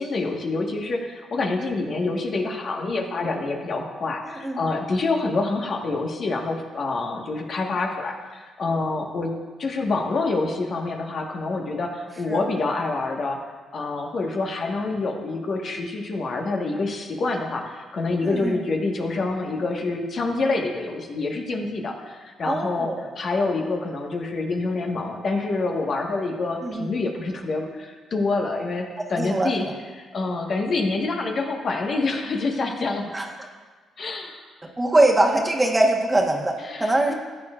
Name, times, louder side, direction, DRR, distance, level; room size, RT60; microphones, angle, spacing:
voice 1, 0.0-9.3 9.6-13.4 13.7-22.9 23.1-29.7 30.0-33.0 34.0-34.4 36.6-37.1, left 3 dB, 50° left, 1 dB, 1.4 m, -27 dB
voice 2, 4.2-4.6 12.3-12.4 18.2-18.6 22.4-23.1 26.6-26.9 29.2-29.7 33.1-33.3 34.8-36.5 36.8-37.1, right 2 dB, 15° right, 1 dB, 1.3 m, -22 dB
14.5 x 8.9 x 2.5 m, 1.4 s
cardioid pair, 90°, 0 cm